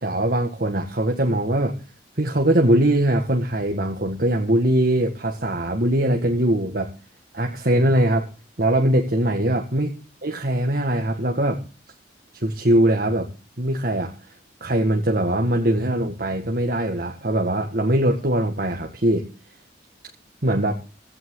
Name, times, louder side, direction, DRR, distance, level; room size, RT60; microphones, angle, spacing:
voice 1, 0.0-1.8 2.2-6.9 7.3-8.3 8.6-9.9 10.2-11.6 12.3-13.3 13.6-19.3 20.4-20.7, right 1 dB, 50° right, 1 dB, 1.7 m, -21 dB
16.5 x 13.0 x 3.8 m, 0.34 s
head